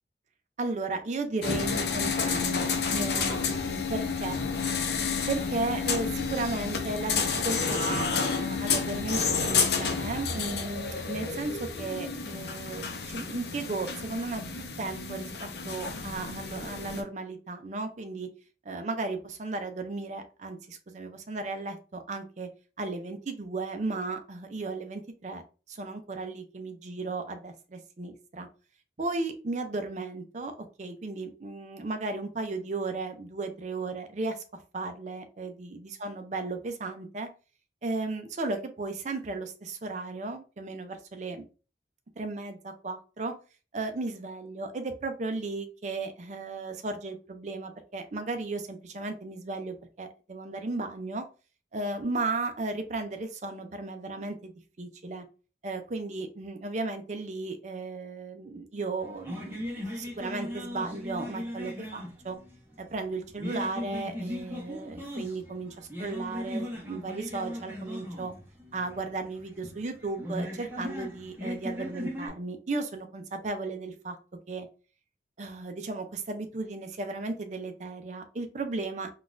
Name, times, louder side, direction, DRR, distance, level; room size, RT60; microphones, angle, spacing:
voice 1, 0.6-4.4 5.3-18.3 18.6-22.5 22.8-25.4 25.7-28.5 29.0-34.4 34.7-37.3 37.8-41.4 42.2-43.3 43.7-51.3 51.7-54.5 54.8-55.2 55.6-62.4 62.8-68.3 68.7-74.2 74.5-74.7 75.4-79.1, right 3 dB, 40° right, 7 dB, 0.5 m, -35 dB
sound 1, 1.4-17.0, left 5 dB, 70° left, 0.6 m, -30 dB
sound 2, 59.0-72.3, left 1 dB, 10° right, 0.9 m, -38 dB
3.7 x 2.4 x 2.5 m, 0.35 s
head